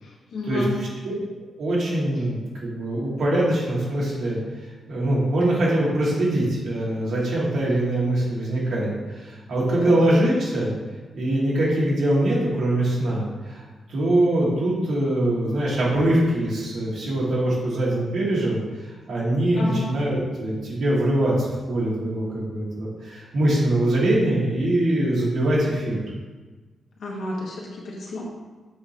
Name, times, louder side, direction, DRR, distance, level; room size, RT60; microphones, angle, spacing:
voice 1, 0.0-0.8 9.8-10.0 19.5-19.9 27.0-28.2, left 2 dB, 65° left, -2 dB, 1.3 m, -31 dB
voice 2, 1.6-4.4 4.9-10.7 11.1-13.6 13.9-26.0, right 1 dB, 60° right, -6 dB, 2.0 m, -23 dB
7.5 x 4.8 x 2.9 m, 1.3 s
wide cardioid pair, 180°, 0 cm